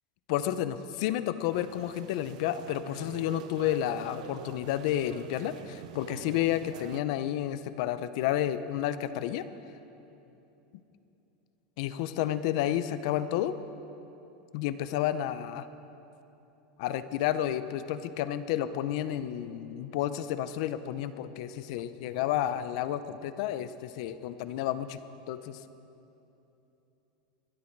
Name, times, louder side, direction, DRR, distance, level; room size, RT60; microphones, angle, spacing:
voice 1, 0.3-9.4 11.8-13.5 14.5-15.6 16.8-25.0 25.3-25.6, left 12 dB, 60° left, 12 dB, 0.7 m, -31 dB
sound 1, 1.5-7.0, right 12 dB, 80° right, 0.5 m, -46 dB
22.0 x 12.5 x 4.7 m, 3.0 s
supercardioid pair, 150°, 4 cm